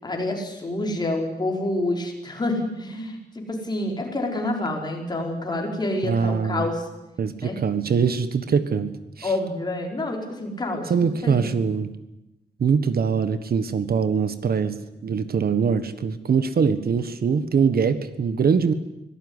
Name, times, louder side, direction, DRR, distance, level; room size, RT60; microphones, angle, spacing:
voice 1, 0.0-6.9 7.4-7.6 9.2-10.9 11.2-11.5, left 1 dB, 25° left, 1 dB, 4.7 m, -28 dB
voice 2, 6.0-6.7 7.2-8.9 9.2-9.3 10.9-11.9 12.6-18.7, right 6 dB, 60° right, 12 dB, 1.5 m, -23 dB
25.5 x 18.0 x 9.8 m, 0.94 s
wide cardioid pair, 170°, 17 cm